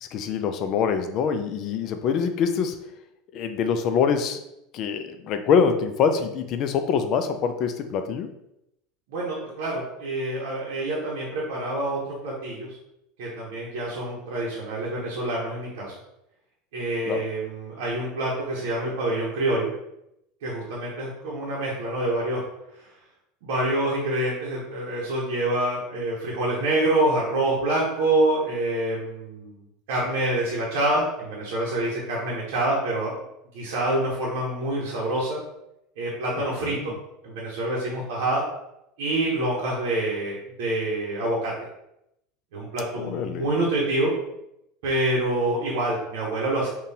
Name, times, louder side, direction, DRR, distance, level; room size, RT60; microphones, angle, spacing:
voice 1, 0.1-2.8 3.3-4.4 4.7-8.3 17.1-17.2 36.4-36.9 43.0-43.5, left 6 dB, 50° left, 8 dB, 0.4 m, -25 dB
voice 2, 9.1-12.7 13.2-15.9 16.7-19.7 20.4-22.4 22.8-22.9 23.4-29.6 29.9-33.1 33.5-35.4 36.0-36.9 37.2-38.4 39.0-41.5 42.5-44.1 44.8-46.7, right 1 dB, 75° right, -5 dB, 0.7 m, -26 dB
3.9 x 2.3 x 2.7 m, 0.83 s
hypercardioid pair, 90°, 0 cm